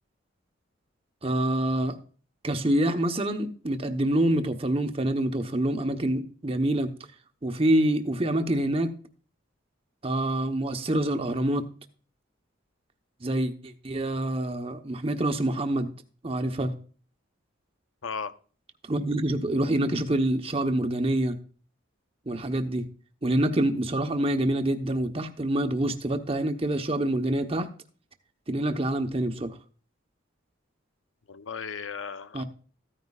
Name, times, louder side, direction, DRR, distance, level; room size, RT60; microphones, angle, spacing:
voice 1, 1.2-2.0 2.4-6.9 7.4-8.9 10.0-11.6 13.2-15.9 16.2-16.7 18.9-21.4 22.3-22.9 23.2-27.7 28.5-29.5 32.3-32.4, right 1 dB, 30° right, 7 dB, 1.0 m, -26 dB
voice 2, 18.0-18.3 31.3-32.4, left 5 dB, 80° left, 12 dB, 0.8 m, -35 dB
14.5 x 9.6 x 2.4 m, 0.40 s
head